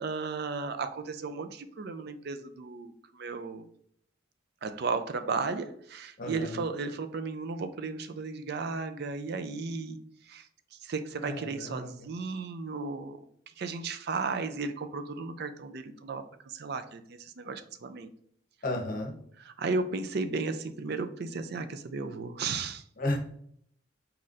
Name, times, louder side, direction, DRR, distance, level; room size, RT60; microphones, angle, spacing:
voice 1, 0.0-3.7 4.6-10.0 10.3-13.3 13.6-18.1 19.4-22.8, right 4 dB, 50° right, 10 dB, 0.4 m, -35 dB
voice 2, 6.2-6.6 11.2-11.9 18.6-19.1 23.0-23.2, left 1 dB, 40° left, 3 dB, 0.8 m, -33 dB
4.2 x 4.1 x 2.5 m, 0.66 s
head